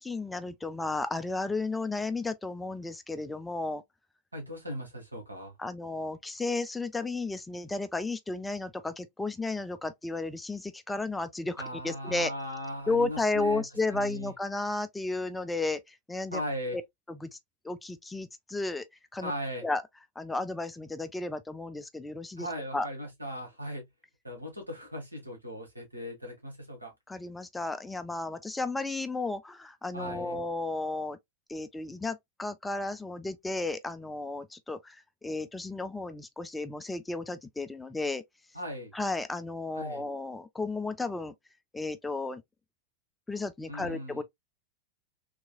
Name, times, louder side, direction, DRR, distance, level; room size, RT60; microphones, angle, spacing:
voice 1, 0.0-3.8 5.6-12.3 12.9-16.4 16.7-16.8 17.1-17.4 17.6-18.8 19.1-19.3 19.6-19.8 20.2-22.5 22.7-22.9 27.1-31.2 31.5-38.2 38.9-41.3 41.7-42.4 43.3-44.2, left 3 dB, 10° left, 0.4 m, -33 dB
voice 2, 4.3-5.5 11.6-14.3 16.3-16.8 19.2-19.6 22.4-23.8 24.2-26.9 29.9-30.4 38.5-38.9 39.7-40.0 43.7-44.2, equal, 85° right, 1.6 m, -38 dB
3.4 x 3.1 x 2.2 m
figure-of-eight pair, 90°, 0 cm